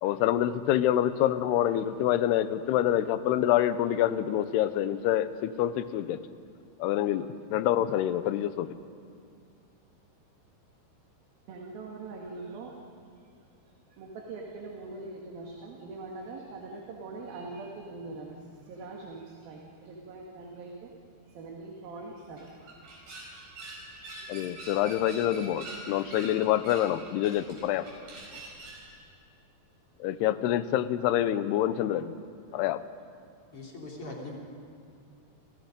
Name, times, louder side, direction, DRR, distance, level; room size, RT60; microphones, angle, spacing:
voice 1, 0.0-6.2 6.8-8.7 24.3-27.9 30.0-32.1 32.5-32.8, left 12 dB, 80° left, 13 dB, 2.8 m, -26 dB
voice 2, 11.5-12.8 13.2-13.3 13.9-20.9 21.3-22.5, right 3 dB, 65° right, -1 dB, 3.7 m, -42 dB
sound 1, 22.2-28.9, right 2 dB, 80° right, 7.3 m, -45 dB
voice 3, 33.5-34.4, left 2 dB, 35° left, -2 dB, 4.1 m, -41 dB
30.0 x 27.0 x 5.3 m, 2.4 s
omnidirectional pair, 4.7 m